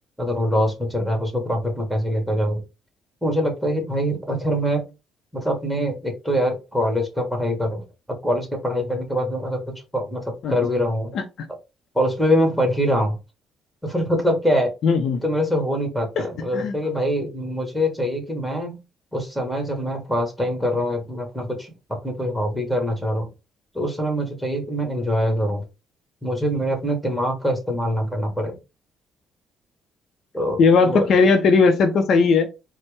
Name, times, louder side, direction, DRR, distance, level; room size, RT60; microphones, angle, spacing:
voice 1, 0.2-2.6 3.2-4.8 5.3-7.8 8.2-11.1 11.9-13.2 13.8-14.7 15.2-18.7 19.1-23.3 23.7-25.6 26.2-28.5 30.3-30.6 30.9-31.1, equal, ahead, 1.6 m, -24 dB
voice 2, 14.8-15.2 16.2-16.3 16.5-16.7 30.6-32.5, left 4 dB, 60° left, 0.6 m, -17 dB
4.3 x 2.1 x 3.4 m
cardioid pair, 105°, 0 cm